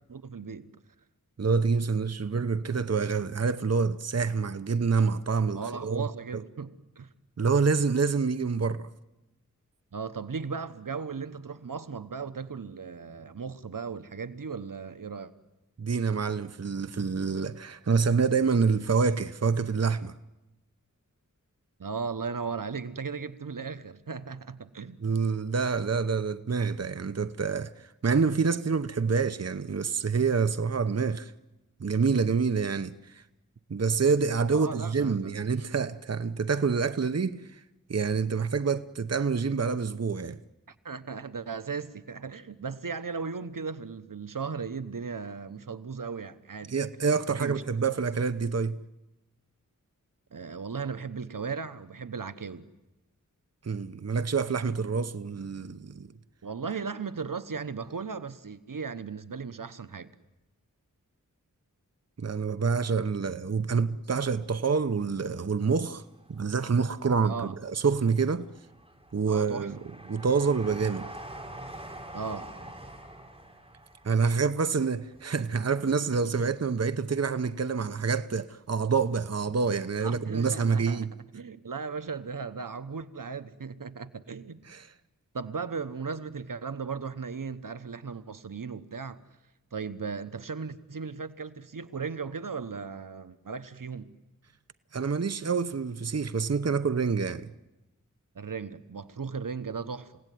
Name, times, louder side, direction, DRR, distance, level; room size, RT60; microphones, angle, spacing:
voice 1, 0.1-0.8 5.5-7.1 9.9-15.3 21.8-25.0 34.5-35.4 40.7-46.7 47.4-47.6 50.3-52.7 56.4-60.1 67.2-67.6 69.3-69.7 72.1-72.5 80.0-81.1 81.3-84.6 85.3-89.2 89.7-94.1 98.3-100.2, right 5 dB, 80° right, 1.0 m, -36 dB
voice 2, 1.4-6.1 7.4-8.9 15.8-20.1 25.0-31.3 31.8-33.2 33.7-37.4 37.9-40.4 46.7-48.8 53.6-56.1 62.2-66.0 66.3-68.5 69.1-69.8 70.1-71.1 74.0-81.1 84.7-84.9 94.9-97.5, right 5 dB, 50° right, 0.8 m, -27 dB
Train, 64.2-65.5 65.9-66.9 67.4-76.2 76.4-76.5, right 1 dB, 15° right, 4.0 m, -46 dB
30.0 x 17.0 x 9.3 m
wide cardioid pair, 45°, 33 cm